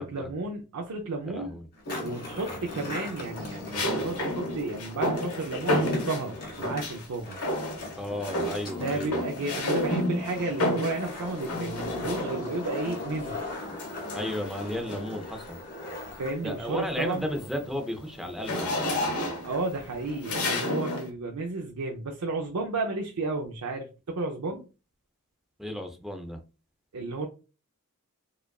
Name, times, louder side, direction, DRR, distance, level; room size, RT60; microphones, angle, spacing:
voice 1, 0.0-1.6 2.0-7.4 8.8-13.4 16.2-17.2 19.4-24.6 26.9-27.3, right 3 dB, 90° right, 0.6 m, -32 dB
voice 2, 1.2-1.6 8.0-9.2 14.1-15.6 16.4-19.3 25.6-26.4, equal, ahead, 0.6 m, -34 dB
Skateboard, 1.7-20.4, left 2 dB, 45° left, 1.7 m, -40 dB
sound 1, 1.9-2.4 3.7-7.1 7.4-8.0 8.2-12.7 13.8-15.2 15.7-16.0 16.3-21.1, left 1 dB, 70° left, 1.2 m, -31 dB
4.8 x 2.4 x 2.3 m
head